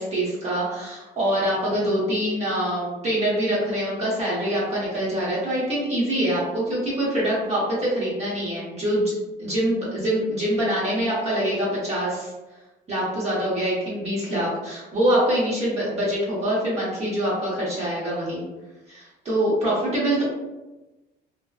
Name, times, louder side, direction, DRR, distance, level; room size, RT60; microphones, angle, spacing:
voice 1, 0.0-9.1 9.4-12.3 12.9-18.4 18.9-20.2, right 1 dB, 40° right, -7 dB, 0.9 m, -24 dB
2.6 x 2.1 x 2.3 m, 1.1 s
cardioid pair, 110°, 17 cm